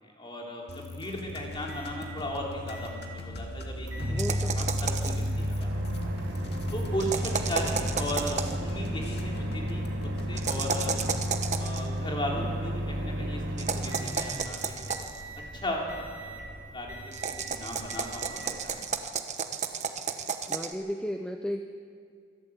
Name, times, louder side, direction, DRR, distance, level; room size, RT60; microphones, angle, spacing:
voice 1, 0.0-4.2 4.5-6.1 6.7-9.9 10.3-10.9 11.6-15.2 15.5-16.4 16.7-19.0, equal, 25° left, -1 dB, 3.4 m, -36 dB
sound 1, 0.7-11.4, equal, 55° left, 2.3 m, -39 dB
Microwave oven, 1.1-19.1, equal, 75° right, 2.7 m, -34 dB
voice 2, 4.1-4.8 20.5-21.6, equal, 5° left, 4 dB, 0.7 m, -34 dB
sound 2, 4.2-5.3 7.0-8.6 10.4-11.8 13.6-15.2 17.1-20.7, right 6 dB, 35° right, 1.0 m, -32 dB
25.5 x 12.0 x 8.4 m, 2.1 s
head